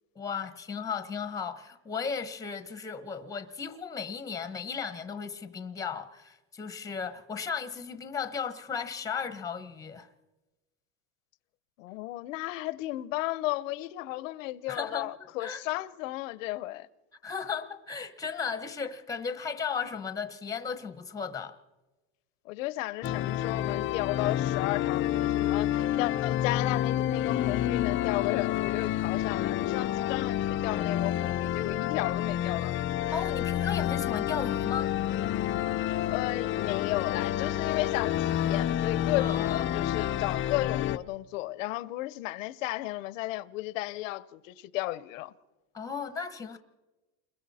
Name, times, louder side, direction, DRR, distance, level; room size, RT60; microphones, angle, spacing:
voice 1, 0.1-10.1 14.7-15.1 15.4-15.6 17.2-21.5 33.1-34.9 39.1-39.8 45.7-46.6, left 6 dB, 10° left, 1.1 m, -35 dB
voice 2, 11.8-16.9 22.4-25.7 26.0-32.8 36.1-45.3, left 18 dB, 90° left, 0.9 m, -34 dB
sound 1, 23.0-41.0, left 12 dB, 30° left, 0.6 m, -29 dB
29.5 x 22.0 x 4.2 m
supercardioid pair, 150°, 37 cm